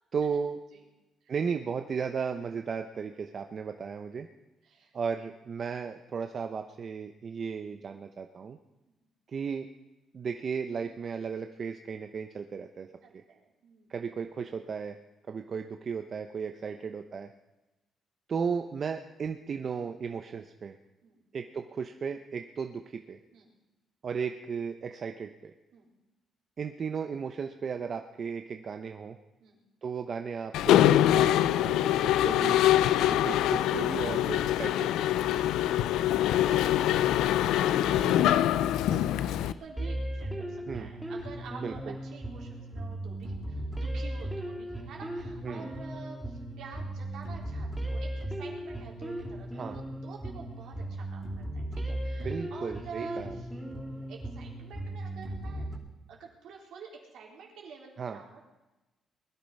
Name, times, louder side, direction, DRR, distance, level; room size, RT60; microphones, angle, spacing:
voice 1, 0.1-0.6 1.3-4.3 4.9-8.6 9.3-9.7 10.1-12.9 13.9-15.0 15.3-17.3 18.3-20.8 21.3-23.2 24.0-25.5 26.6-29.2 29.8-32.6 33.0-35.2 40.7-40.9 41.6-41.9 45.4-45.7 49.5-49.8 52.2-53.4 58.0-58.2, right 6 dB, 50° right, 6 dB, 0.8 m, -35 dB
voice 2, 4.6-4.9 8.9-9.0 13.0-13.9 16.7-16.8 21.0-21.3 23.3-23.5 25.7-25.9 29.4-29.6 35.2-58.4, right 5 dB, 80° right, -1 dB, 3.9 m, -48 dB
Mechanisms, 30.5-39.5, left 12 dB, 90° left, 0.5 m, -24 dB
sound 1, 39.8-55.8, right 1 dB, 5° right, 3.2 m, -37 dB
20.5 x 10.5 x 5.5 m, 1.0 s
cardioid pair, 90°, 0 cm